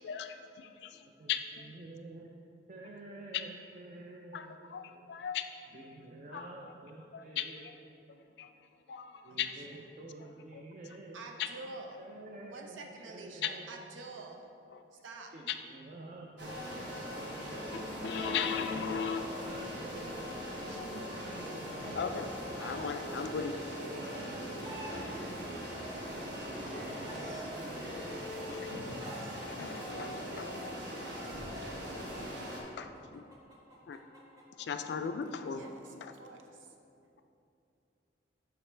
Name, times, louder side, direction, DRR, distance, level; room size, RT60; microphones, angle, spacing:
voice 1, 0.0-1.0 1.3-1.4 4.3-4.5 4.7-5.5 6.3-6.4 7.1-7.4 8.4-8.5 8.9-9.5 10.5-10.6 13.4-13.5 18.0-19.2 22.0-22.3 22.6-23.6 29.6-30.5 32.8-33.2 33.9-34.0 34.6-35.6 36.0-36.1, left 7 dB, 60° left, 8 dB, 0.3 m, -36 dB
voice 2, 1.0-5.2 5.7-8.2 9.2-11.3 12.0-14.0 15.3-17.7 18.7-22.4 23.6-25.8 26.4-28.3, right 2 dB, 40° right, 0 dB, 0.4 m, -50 dB
voice 3, 9.3-9.8 11.1-12.0 12.5-14.5 14.9-15.3 16.4-16.6 18.1-18.6 19.9-21.0 35.4-36.8, right 3 dB, 85° right, 3 dB, 0.6 m, -48 dB
sound 1, 16.4-32.6, equal, 60° right, 1.2 m, -40 dB
Chicken rooster, 22.3-22.9 24.0-25.1 26.0-27.4 28.3-29.4 30.4-31.4 32.6-35.9, right 1 dB, 20° right, 0.8 m, -50 dB
7.6 x 5.0 x 3.3 m, 2.7 s
head